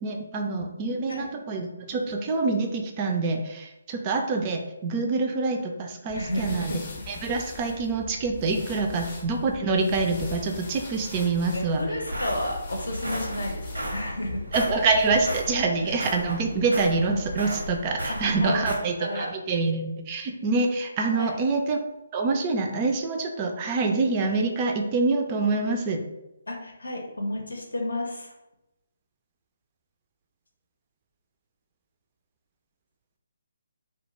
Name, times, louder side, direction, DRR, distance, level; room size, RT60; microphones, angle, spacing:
voice 1, 0.0-6.7 7.1-11.8 14.5-21.8 22.1-26.0, right 3 dB, 30° right, 3 dB, 0.3 m, -26 dB
voice 2, 6.1-6.8 11.5-14.4 15.8-16.0 18.1-18.7 19.0-19.3 21.1-21.3 26.5-28.3, left 1 dB, 80° left, 1 dB, 0.6 m, -31 dB
sound 1, 6.1-15.5, left 4 dB, 35° left, 0.6 m, -42 dB
sound 2, 11.6-18.7, equal, 90° right, 0.7 m, -35 dB
2.3 x 2.2 x 3.0 m, 0.93 s
figure-of-eight pair, 145°, 0 cm